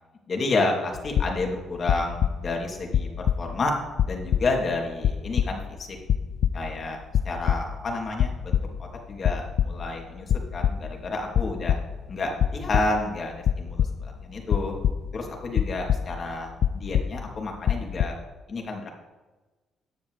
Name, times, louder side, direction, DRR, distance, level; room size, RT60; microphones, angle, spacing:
voice 1, 0.3-3.7 4.1-5.9 6.5-7.0 7.2-11.8 12.1-14.7 15.1-18.2 18.5-18.9, left 2 dB, 45° left, 0 dB, 2.8 m, -30 dB
sound 1, 1.0-1.6 1.9-2.6 2.9-3.7 4.0-4.7 5.0-5.8 6.1-6.9 7.1-7.9 8.2-8.8 9.1-10.0 10.3-11.1 11.3-12.1 12.4-13.0 13.4-15.3 15.6-16.3 16.6-17.4 17.6-18.0, left 9 dB, 65° left, 0.4 m, -25 dB
14.5 x 9.5 x 3.3 m, 1.2 s
cardioid pair, 90°, 0 cm